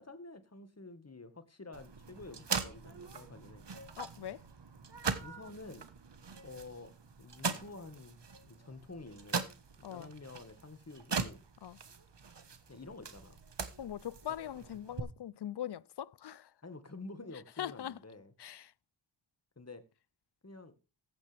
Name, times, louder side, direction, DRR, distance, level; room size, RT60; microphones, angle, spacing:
voice 1, 0.0-3.7 5.2-5.9 6.4-9.5 9.8-11.4 12.7-13.4 14.3-14.4 16.6-18.3 19.6-19.8 20.4-20.7, left 3 dB, 30° left, 1.8 m, -49 dB
sound 1, 1.7-15.0, right 5 dB, 60° right, 1.5 m, -41 dB
voice 2, 4.0-4.4 9.8-10.1 11.6-11.8 13.8-16.5 17.6-18.0 18.4-18.7, left 11 dB, 55° left, 0.5 m, -41 dB
14.5 x 9.3 x 3.4 m
wide cardioid pair, 60°, 48 cm